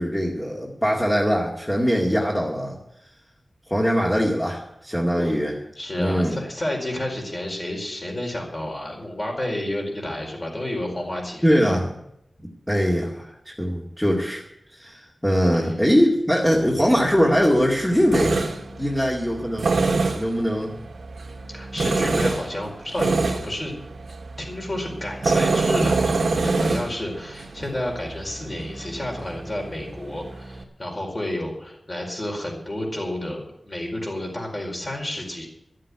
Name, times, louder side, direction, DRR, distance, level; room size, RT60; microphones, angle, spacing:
voice 1, 0.0-2.8 3.7-5.6 6.0-6.4 11.4-11.9 12.7-14.4 14.8-18.4 18.8-19.7 20.2-20.8, equal, 5° left, -2 dB, 2.1 m, -21 dB
voice 2, 5.8-11.8 15.5-15.8 21.5-23.7 24.4-35.5, left 1 dB, 35° left, -1 dB, 4.7 m, -30 dB
Tools, 16.5-30.6, right 3 dB, 85° right, 1.8 m, -27 dB
13.0 x 7.6 x 9.6 m, 0.79 s
wide cardioid pair, 105°, 0 cm